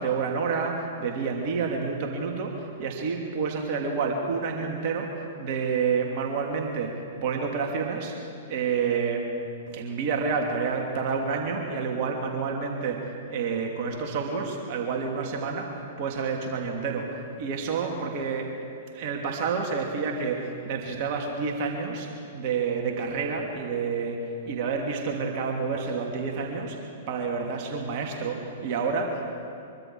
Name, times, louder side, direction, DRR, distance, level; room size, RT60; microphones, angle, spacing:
voice 1, 0.0-8.2 8.5-9.3 9.7-18.5 18.9-29.3, right 5 dB, 40° right, 1 dB, 2.8 m, -29 dB
24.0 x 23.5 x 4.8 m, 2.5 s
figure-of-eight pair, 105°, 0 cm